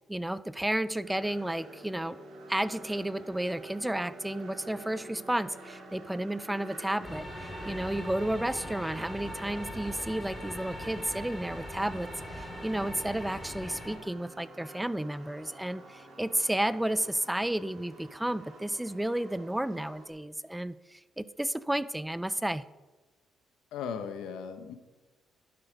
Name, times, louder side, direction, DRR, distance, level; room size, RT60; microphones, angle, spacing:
voice 1, 0.1-2.2 2.5-22.7, right 1 dB, 5° right, 17 dB, 0.4 m, -32 dB
sound 1, 1.0-20.1, right 2 dB, 65° right, 3.5 m, -48 dB
sound 2, 7.0-14.0, left 1 dB, 15° left, 4.7 m, -41 dB
voice 2, 23.7-24.7, left 7 dB, 90° left, 8 dB, 1.2 m, -37 dB
12.0 x 8.0 x 5.2 m, 1.2 s
cardioid pair, 90°, 0 cm